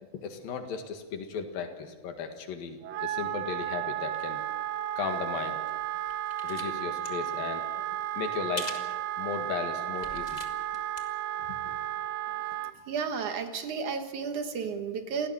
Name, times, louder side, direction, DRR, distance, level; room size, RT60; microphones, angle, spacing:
voice 1, 0.2-4.4 5.0-5.6 6.4-7.7 8.2-8.7 9.2-10.4 11.7-11.8, left 6 dB, 80° left, 5 dB, 3.6 m, -36 dB
Wind instrument woodwind instrument, 2.8-12.7, right 12 dB, 80° right, 1.5 m, -33 dB
sound 1, 5.7-6.7 6.9-7.1 8.6-8.9 9.4-9.5 9.9-11.0 11.3-11.4, left 2 dB, 25° left, 0.8 m, -41 dB
voice 2, 12.5-15.3, right 6 dB, 65° right, 6 dB, 2.5 m, -33 dB
28.5 x 17.5 x 6.5 m, 1.3 s
omnidirectional pair, 4.1 m